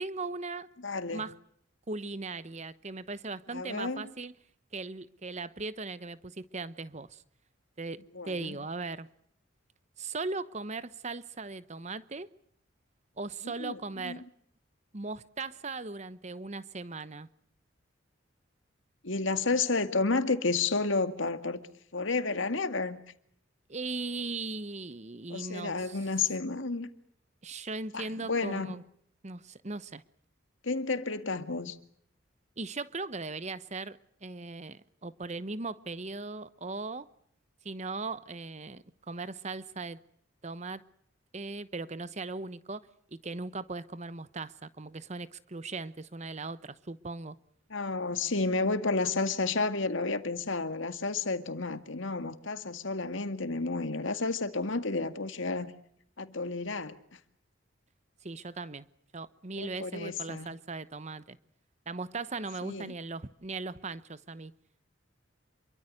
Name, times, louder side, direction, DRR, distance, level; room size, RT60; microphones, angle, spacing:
voice 1, 0.0-0.7 1.1-1.3 1.9-4.3 4.7-7.2 7.8-9.1 10.0-12.3 13.2-14.2 14.9-17.3 23.7-26.0 27.4-28.8 29.2-30.0 32.6-37.1 37.6-40.0 40.4-40.8 41.3-47.4 58.2-58.9 59.1-61.4 61.9-64.5, right 3 dB, 35° right, 1.0 m, -38 dB
voice 2, 0.8-1.3 3.5-4.0 8.1-8.6 13.6-14.3 19.0-21.6 21.9-23.0 25.3-26.9 27.9-28.7 30.6-31.8 47.7-55.7 56.2-56.9 59.6-60.5 62.6-62.9, left 3 dB, 75° left, 2.1 m, -31 dB
27.5 x 23.5 x 6.6 m
head